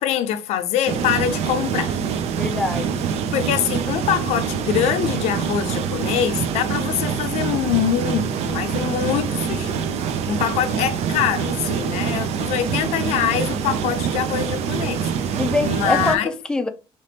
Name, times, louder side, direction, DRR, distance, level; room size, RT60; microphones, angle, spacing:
voice 1, 0.0-2.0 3.3-9.9 10.3-16.3, left 10 dB, 90° left, 0.4 m, -24 dB
sound 1, 0.9-16.2, right 7 dB, 80° right, 0.5 m, -25 dB
voice 2, 2.3-3.1 15.4-16.7, left 3 dB, 5° left, 0.4 m, -24 dB
3.4 x 2.8 x 2.7 m
cardioid pair, 110°, 11 cm